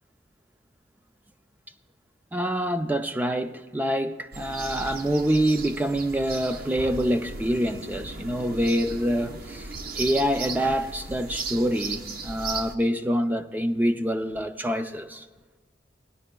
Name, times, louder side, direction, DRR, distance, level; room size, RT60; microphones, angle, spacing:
voice 1, 2.3-15.3, equal, 10° right, 0.3 m, -26 dB
sound 1, 4.3-12.7, right 3 dB, 55° right, 0.6 m, -36 dB
17.0 x 10.5 x 2.2 m
head